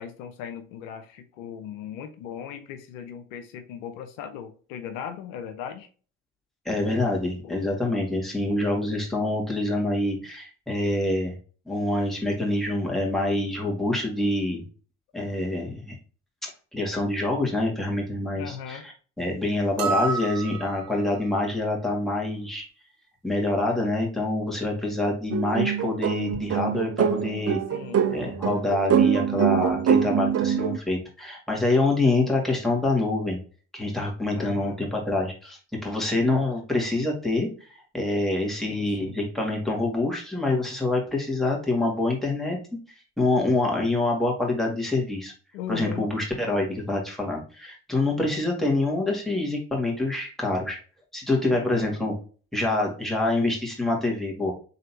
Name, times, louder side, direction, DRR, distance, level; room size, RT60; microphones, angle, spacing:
voice 1, 0.0-5.9 7.4-7.6 18.3-18.8 27.7-28.1 34.3-34.8 38.7-39.2 45.5-46.1 51.5-52.0, left 8 dB, 85° left, 0.6 m, -38 dB
voice 2, 6.7-11.4 11.7-14.6 15.1-15.9 16.4-22.6 23.2-27.6 28.1-33.4 33.7-42.6 43.2-45.3 45.7-50.8 51.1-52.1 52.5-54.5, left 2 dB, ahead, 2.0 m, -26 dB
sound 1, 19.8-21.1, right 5 dB, 80° right, 0.9 m, -29 dB
sound 2, 25.3-30.8, right 8 dB, 40° right, 0.6 m, -24 dB
4.1 x 3.4 x 2.8 m
hypercardioid pair, 50°, 39 cm